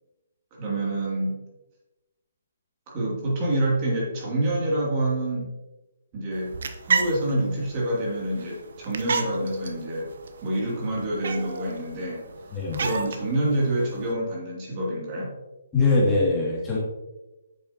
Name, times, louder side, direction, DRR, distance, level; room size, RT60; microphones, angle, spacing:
voice 1, 0.5-1.4 2.9-5.5 6.1-6.5 6.8-10.1 10.4-12.2 12.7-15.3, right 1 dB, 30° right, -4 dB, 2.7 m, -27 dB
sound 1, 6.3-14.1, right 5 dB, 65° right, 0.8 m, -33 dB
voice 2, 12.5-12.8 15.7-16.8, left 3 dB, 15° left, -6 dB, 2.4 m, -22 dB
8.0 x 6.8 x 2.9 m, 1.0 s
hypercardioid pair, 145°, 0 cm